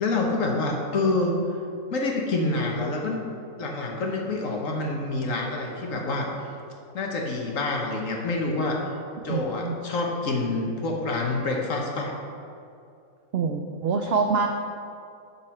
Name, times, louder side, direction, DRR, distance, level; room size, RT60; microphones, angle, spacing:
voice 1, 0.0-1.4 1.9-3.2 3.6-6.5 6.9-8.9 9.2-12.1, left 2 dB, 65° left, 0 dB, 1.3 m, -27 dB
voice 2, 9.3-9.8 13.3-14.5, right 5 dB, 75° right, 4 dB, 0.5 m, -25 dB
11.0 x 4.2 x 4.3 m, 2.5 s
omnidirectional pair, 1.5 m